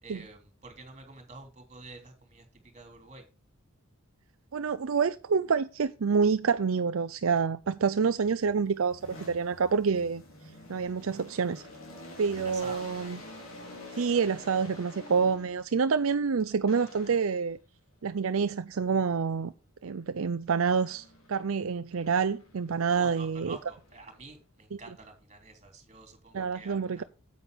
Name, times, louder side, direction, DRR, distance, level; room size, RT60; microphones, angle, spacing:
voice 1, 0.0-2.4 2.7-3.2 12.4-13.1 22.9-27.0, right 3 dB, 35° right, 3.2 m, -48 dB
voice 2, 4.5-10.2 10.7-11.6 12.2-13.2 14.0-17.6 18.0-19.5 19.8-23.6 24.7-24.8 26.3-27.0, right 5 dB, 75° right, 0.5 m, -27 dB
sound 1, 8.1-15.8 16.7-17.5 20.6-21.5 21.9-24.3, left 2 dB, 75° left, 4.1 m, -49 dB
9.2 x 8.4 x 3.6 m
head